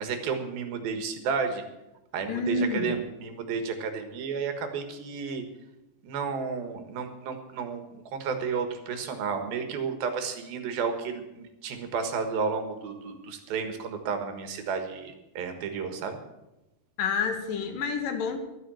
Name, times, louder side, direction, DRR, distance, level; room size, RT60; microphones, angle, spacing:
voice 1, 0.0-1.6 2.1-5.4 6.0-16.2, right 5 dB, 70° right, 7 dB, 3.2 m, -32 dB
voice 2, 2.3-3.0 17.0-18.4, left 4 dB, 65° left, 6 dB, 2.8 m, -28 dB
12.5 x 10.5 x 7.7 m, 0.97 s
omnidirectional pair, 4.6 m